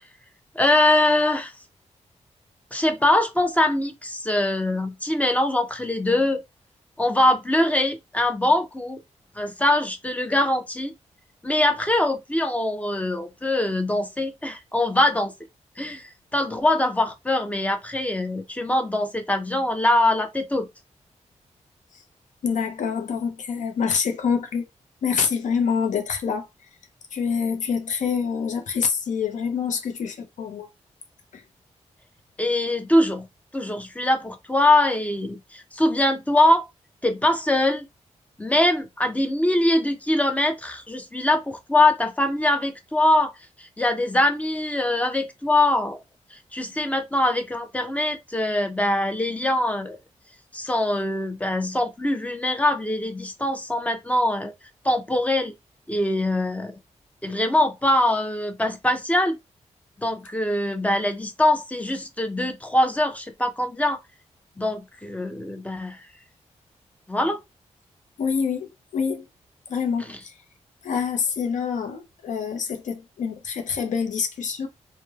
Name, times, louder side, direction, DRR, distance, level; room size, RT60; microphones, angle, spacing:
voice 1, 0.6-1.5 2.7-6.4 7.0-9.0 9.4-10.9 11.4-15.3 15.8-20.7 32.4-33.3 33.5-36.7 37.0-37.9 38.4-43.3 43.6-46.0 46.3-50.0 50.5-54.5 54.8-55.5 55.9-56.7 57.2-59.4 60.0-64.0 64.6-66.0 67.1-67.4, left 1 dB, 10° left, 0.5 m, -23 dB
voice 2, 22.4-24.7 25.0-26.5 27.1-30.7 31.3-31.4 68.2-69.3 69.7-70.3 70.8-74.7, left 6 dB, 85° left, 0.5 m, -26 dB
3.0 x 2.1 x 2.3 m
wide cardioid pair, 95°, 12 cm